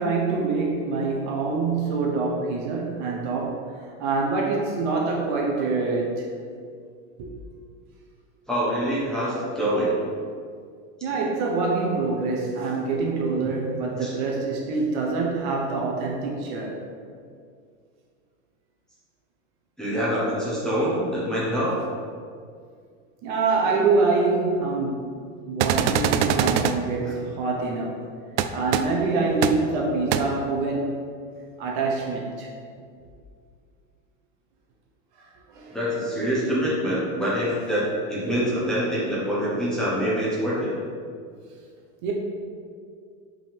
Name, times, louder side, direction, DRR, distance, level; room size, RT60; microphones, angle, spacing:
voice 1, 0.0-3.6 4.0-6.3 7.2-7.3 11.0-16.8 23.2-28.1 28.5-30.9 31.6-32.5 35.2-35.8 42.0-42.1, right 3 dB, 45° right, -1 dB, 0.8 m, -25 dB
voice 2, 8.5-9.9 11.1-11.2 14.0-14.1 19.8-21.8 27.0-27.1 35.7-40.7, equal, ahead, -9 dB, 0.9 m, -25 dB
sound 1, 25.6-26.7 28.4-28.5 28.7-28.8 29.4-29.5 30.1-30.2, right 9 dB, 75° right, 0.5 m, -22 dB
5.3 x 3.8 x 5.1 m, 2.2 s
supercardioid pair, 170°, 36 cm